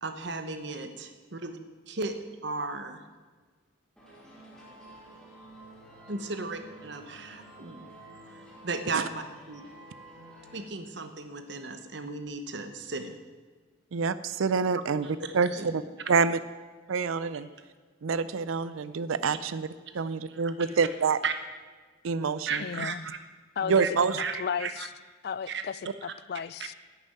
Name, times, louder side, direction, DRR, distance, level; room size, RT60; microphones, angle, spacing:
voice 1, 0.0-1.6 1.9-2.2 2.4-3.0 6.1-7.9 8.6-9.6 10.5-13.2 15.2-15.7 20.3-20.4 21.2-21.3 22.5-23.2 23.6-23.9 24.2-24.9 25.5-25.6, right 4 dB, 60° right, 1.0 m, -35 dB
sound 1, 4.0-10.6, right 1 dB, 5° left, 2.8 m, -50 dB
voice 2, 13.9-15.1 15.3-15.8 16.1-16.4 16.9-17.5 18.0-19.7 19.9-21.2 22.0-22.6 23.7-24.2, right 5 dB, 90° right, 0.5 m, -26 dB
voice 3, 22.6-23.1 23.6-23.8 24.4-24.9 25.2-26.7, left 6 dB, 50° left, 0.3 m, -34 dB
11.0 x 6.9 x 8.9 m
head